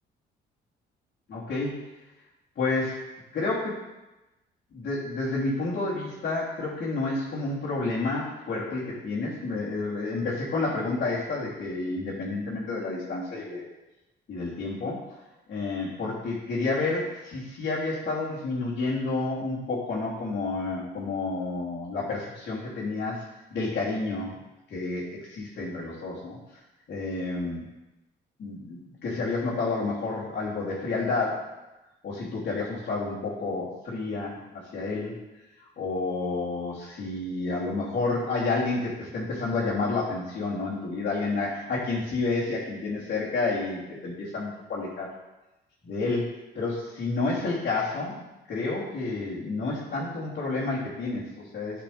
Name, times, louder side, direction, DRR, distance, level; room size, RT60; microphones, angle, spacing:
voice 1, 1.3-1.8 2.6-3.0 3.3-3.8 4.7-13.7 14.3-15.0 15.5-23.2 23.5-24.3 24.7-26.4 26.9-27.6 28.4-31.4 32.0-35.2 35.8-45.1 45.8-46.3 46.6-51.8, left 3 dB, 60° left, -10 dB, 3.2 m, -30 dB
11.5 x 5.9 x 3.4 m, 0.99 s
cardioid pair, 90°, 20 cm